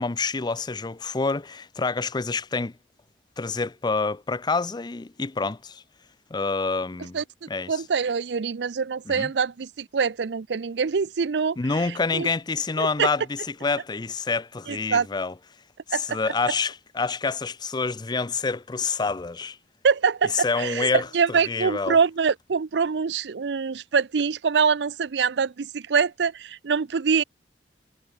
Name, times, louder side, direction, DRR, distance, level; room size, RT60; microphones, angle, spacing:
voice 1, 0.0-2.7 3.4-5.8 6.3-7.2 7.5-7.8 9.1-9.3 11.6-15.3 15.9-19.6 20.3-22.0, left 4 dB, 25° left, 0.5 m, -27 dB
voice 2, 7.7-11.6 11.9-12.3 12.8-13.1 14.7-15.1 15.9-16.2 19.8-27.2, right 6 dB, 70° right, 0.5 m, -24 dB
head